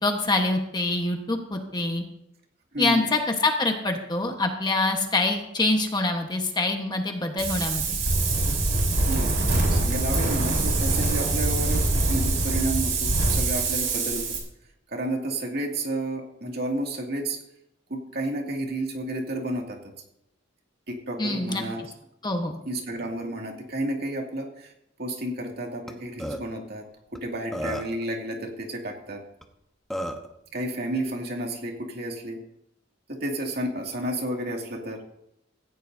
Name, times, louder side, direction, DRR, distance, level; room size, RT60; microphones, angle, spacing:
voice 1, 0.0-2.0 2.8-8.0 21.2-21.6 22.2-22.6, left 2 dB, 20° left, 3 dB, 1.2 m, -25 dB
voice 2, 2.7-3.1 9.1-9.3 9.7-14.4 14.9-17.4 17.9-19.9 20.9-21.8 22.6-24.7 25.0-26.8 27.1-29.2 30.5-32.4 33.1-35.0, right 1 dB, 55° right, 1 dB, 2.3 m, -31 dB
Wind, 7.4-14.4, right 2 dB, 75° right, 5.0 m, -24 dB
Burping eructation, 25.9-26.0 26.2-26.4 27.1-27.2 27.5-28.0 29.4-29.5 29.9-30.3, equal, ahead, 1.0 m, -31 dB
17.0 x 15.5 x 2.7 m, 0.83 s
head